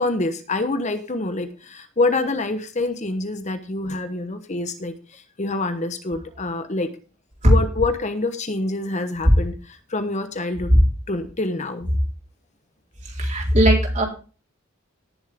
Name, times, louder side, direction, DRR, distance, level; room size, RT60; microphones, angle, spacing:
voice 1, 0.0-6.9 7.4-10.7 11.1-11.9, left 2 dB, 35° left, 9 dB, 1.0 m, -26 dB
voice 2, 13.0-14.0, right 1 dB, 35° right, 0 dB, 4.1 m, -18 dB
18.0 x 7.2 x 3.6 m, 0.35 s
head